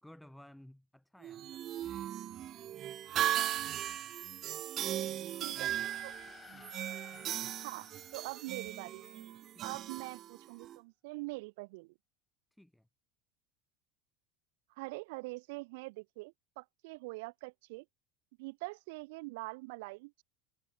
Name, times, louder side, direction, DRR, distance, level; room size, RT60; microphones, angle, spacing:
voice 1, 0.0-2.1 4.8-6.0 6.5-6.7 9.5-9.8 12.5-12.9, left 1 dB, 5° left, 2.6 m, -59 dB
sound 1, 1.2-10.8, right 12 dB, 40° right, 0.4 m, -38 dB
voice 2, 5.4-5.7 6.0-6.2 7.6-9.0 9.6-11.9 14.8-17.8 18.4-20.2, right 25 dB, 75° right, 0.8 m, -44 dB
sound 2, 5.5-9.2, left 5 dB, 20° left, 3.7 m, -56 dB
supercardioid pair, 115°, 0 cm